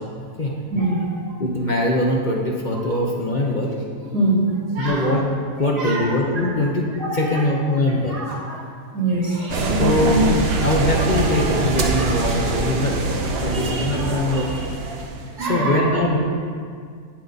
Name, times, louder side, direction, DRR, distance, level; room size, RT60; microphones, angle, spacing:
voice 1, 0.7-1.3 2.8-2.9 4.1-5.1 5.6-6.7 7.0-7.5 8.0-8.6 8.9-9.9 11.8-12.3 13.1-14.5 15.4-16.0, right 2 dB, 90° right, -4 dB, 2.4 m, -26 dB
voice 2, 1.4-3.7 4.8-8.2 9.8-10.3 10.6-13.0 13.4-14.5 15.4-16.2, left 1 dB, 40° left, -2 dB, 0.8 m, -22 dB
sound 1, 9.5-15.3, right 2 dB, 50° right, 0.8 m, -22 dB
8.8 x 8.6 x 4.0 m, 2.2 s
omnidirectional pair, 1.7 m